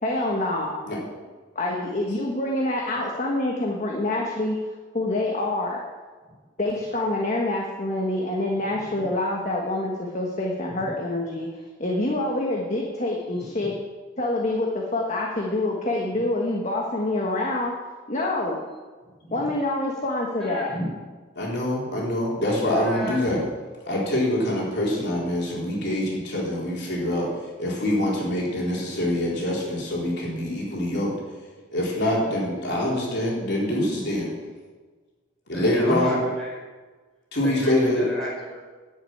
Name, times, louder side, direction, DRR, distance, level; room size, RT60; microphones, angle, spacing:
voice 1, 0.0-0.8 1.5-4.6 4.9-5.8 6.6-11.5 11.8-13.7 14.2-17.7 18.1-18.6 19.3-20.7, left 2 dB, 35° left, -1 dB, 1.4 m, -26 dB
voice 2, 20.4-20.9 22.7-23.2 35.5-36.5 37.4-38.6, right 1 dB, 5° left, -6 dB, 5.3 m, -32 dB
voice 3, 21.4-23.4 23.9-27.3 27.6-31.1 31.7-34.3 35.5-36.2 37.3-38.1, left 1 dB, 55° left, -4 dB, 4.0 m, -25 dB
10.5 x 8.7 x 8.8 m, 1.4 s
head